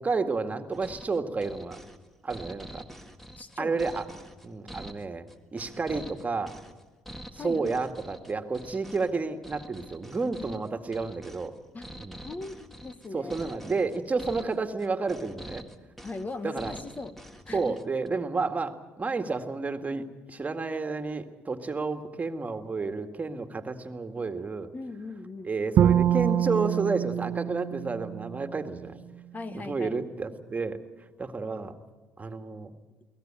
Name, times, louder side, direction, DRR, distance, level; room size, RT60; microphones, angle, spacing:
voice 1, 0.0-1.8 2.2-2.9 3.6-4.0 4.4-6.5 7.3-11.5 12.0-12.2 13.1-15.7 16.4-16.8 17.5-24.7 25.4-29.0 29.5-31.8 32.2-32.7, right 4 dB, 25° right, 7 dB, 2.0 m, -31 dB
sound 1, 0.7-18.1, equal, 5° left, 1.8 m, -46 dB
voice 2, 3.4-3.8 7.4-7.7 11.7-11.8 12.2-13.3 16.0-17.2 17.5-17.7 24.7-25.5 29.3-30.0, left 3 dB, 30° left, 12 dB, 1.2 m, -39 dB
Bowed string instrument, 25.8-28.9, right 10 dB, 60° right, 0.7 m, -25 dB
22.5 x 18.0 x 8.9 m, 1.2 s
supercardioid pair, 70°, 5 cm